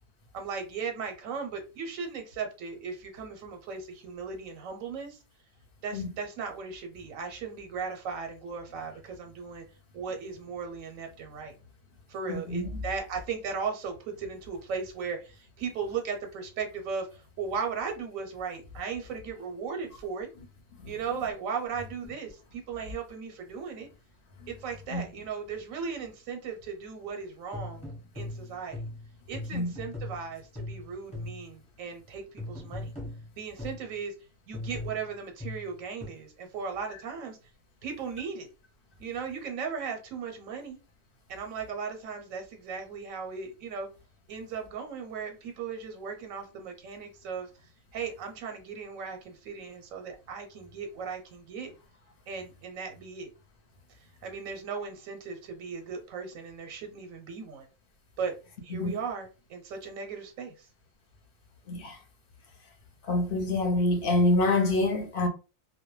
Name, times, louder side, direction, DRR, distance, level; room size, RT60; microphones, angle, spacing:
voice 1, 0.3-5.2 5.8-9.6 9.9-11.5 12.1-20.3 20.9-23.9 24.5-27.8 28.1-28.8 29.3-32.9 33.4-34.1 34.5-37.4 37.8-38.5 39.0-40.8 41.3-43.9 44.3-47.5 47.9-51.7 52.3-53.3 54.2-57.7 58.2-58.3 58.6-60.7, right 5 dB, 85° right, 1.0 m, -37 dB
voice 2, 12.3-12.8 20.8-20.9 24.4-24.5 24.9-25.0 29.5-29.7 58.7-59.0 61.7-62.0 63.0-65.3, left 2 dB, 50° left, 0.8 m, -26 dB
sound 1, 27.5-31.6 32.4-33.9 34.5-36.1, left 2 dB, 5° left, 0.8 m, -39 dB
2.2 x 2.1 x 3.0 m
omnidirectional pair, 1.4 m